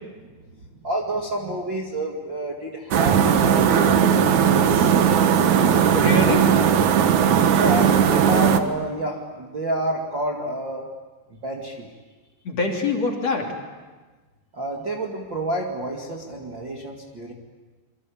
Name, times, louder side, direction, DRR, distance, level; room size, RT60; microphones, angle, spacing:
voice 1, 0.8-4.6 7.5-10.9 11.3-11.9 14.5-17.3, right 1 dB, 35° right, -1 dB, 2.2 m, -29 dB
sound 1, 2.9-8.6, right 8 dB, 60° right, 2.2 m, -18 dB
voice 2, 5.9-6.5 12.5-13.5, left 3 dB, 40° left, 1 dB, 4.0 m, -24 dB
28.5 x 24.0 x 8.6 m, 1.3 s
omnidirectional pair, 4.8 m